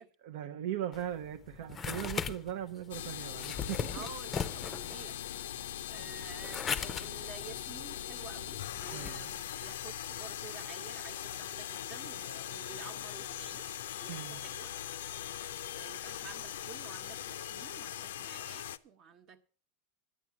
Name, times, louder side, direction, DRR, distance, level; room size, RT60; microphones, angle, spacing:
voice 1, 0.2-4.0 8.9-9.3 14.1-14.4, right 11 dB, 70° right, 0.7 m, -39 dB
sound 1, 0.9-9.1, left 7 dB, 25° left, 0.5 m, -39 dB
sound 2, 2.9-18.8, left 11 dB, 90° left, 0.5 m, -41 dB
voice 2, 3.9-5.2 5.5-14.7 15.7-19.5, right 7 dB, 40° right, 1.0 m, -51 dB
11.0 x 8.6 x 5.9 m
supercardioid pair, 135°, 0 cm